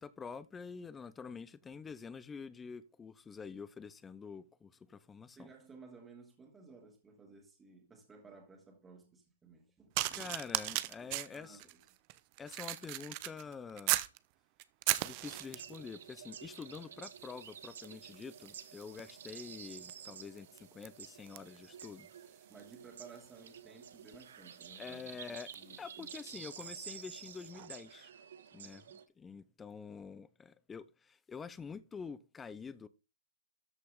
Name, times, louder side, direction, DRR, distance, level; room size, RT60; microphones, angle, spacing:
voice 1, 0.0-5.5 10.1-11.6 12.4-14.0 15.0-22.1 24.8-25.5 25.8-28.1 28.5-32.9, left 5 dB, 10° left, 0.7 m, -47 dB
voice 2, 5.3-10.4 11.0-11.9 22.5-26.1, right 4 dB, 15° right, 2.8 m, -57 dB
sound 1, 9.9-14.2 14.6-15.8 16.6-16.9 17.1-26.8 27.5-27.7, right 19 dB, 40° right, 0.8 m, -40 dB
sound 2, 15.2-29.0, right 8 dB, 70° right, 1.7 m, -51 dB
13.5 x 5.7 x 3.7 m
hypercardioid pair, 135°, 0 cm